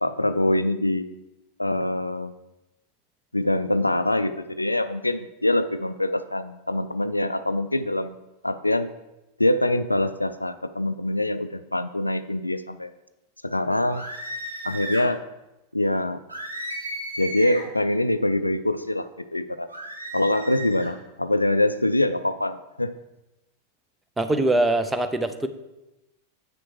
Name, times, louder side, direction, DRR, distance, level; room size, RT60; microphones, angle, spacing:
voice 1, 0.0-1.1 1.6-2.3 3.3-8.2 8.4-8.9 9.4-12.9 13.4-14.0 14.6-15.2 15.7-16.2 17.2-19.7 20.1-22.9, left 1 dB, 85° left, 12 dB, 0.3 m, -24 dB
sound 1, 13.9-15.1 16.3-17.7 19.7-20.9, right 1 dB, 80° right, 1.6 m, -34 dB
voice 2, 24.2-25.5, right 2 dB, 10° right, 9 dB, 0.6 m, -22 dB
7.7 x 6.1 x 4.7 m, 0.98 s
figure-of-eight pair, 90°, 0 cm